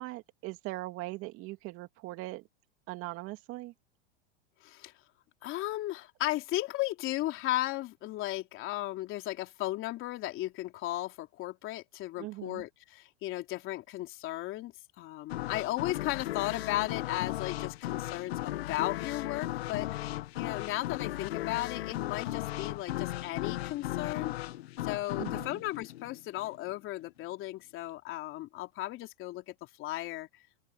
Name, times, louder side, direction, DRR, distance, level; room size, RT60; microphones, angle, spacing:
voice 1, 0.0-2.4 2.9-3.7 12.2-12.6 25.2-25.6, right 19 dB, 45° right, 2.3 m, -40 dB
voice 2, 4.6-4.9 5.4-24.3 24.8-30.3, left 16 dB, 40° left, 3.5 m, -35 dB
sound 1, 15.3-26.8, left 15 dB, 75° left, 1.8 m, -36 dB
open air
hypercardioid pair, 120°, 31 cm